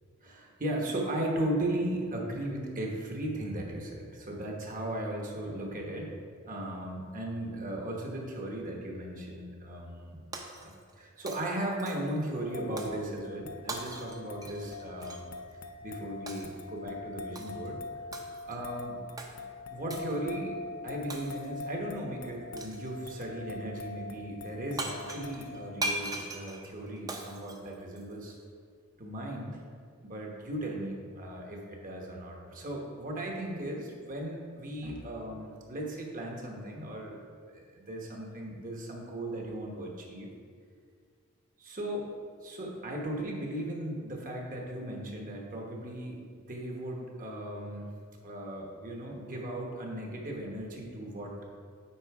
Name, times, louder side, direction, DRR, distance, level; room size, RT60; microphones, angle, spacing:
voice 1, 0.2-6.1 6.5-10.2 10.6-15.3 15.8-17.8 18.4-19.0 19.3-20.5 20.8-28.4 29.0-29.6 30.0-37.2 37.5-40.3 41.6-42.1 42.4-47.9 48.2-51.3, right 1 dB, 40° right, 0 dB, 1.2 m, -37 dB
Shatter, 10.3-11.0 11.3-12.2 12.8-13.0 13.7-15.3 16.3-16.6 17.3-17.7 18.1-18.6 19.2-19.3 19.9-20.2 21.1-21.6 22.6-22.9 24.5-24.6 24.8-28.4, right 2 dB, 15° right, 0.6 m, -40 dB
sound 1, 12.3-25.7, left 3 dB, 75° left, 0.6 m, -44 dB
8.8 x 3.9 x 4.8 m, 2.1 s
head